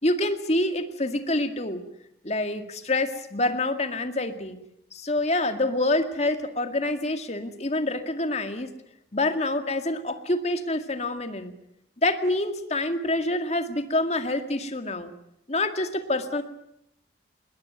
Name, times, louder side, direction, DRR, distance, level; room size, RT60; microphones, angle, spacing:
voice 1, 0.0-1.8 2.2-4.6 4.9-8.7 9.1-11.5 12.0-15.1 15.5-16.4, left 2 dB, 35° left, 7 dB, 2.0 m, -26 dB
21.5 x 20.0 x 9.4 m, 0.78 s
head